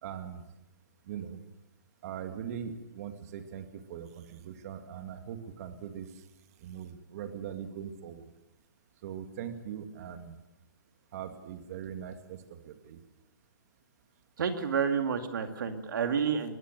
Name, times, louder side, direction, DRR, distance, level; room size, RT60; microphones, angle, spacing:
voice 1, 0.0-0.4 1.1-1.4 2.0-6.1 6.6-8.3 9.0-10.4 11.1-13.0, right 8 dB, 50° right, 6 dB, 2.4 m, -41 dB
voice 2, 14.4-16.6, right 6 dB, 70° right, 6 dB, 2.4 m, -29 dB
23.0 x 20.5 x 6.7 m, 0.94 s
hypercardioid pair, 140°, 11 cm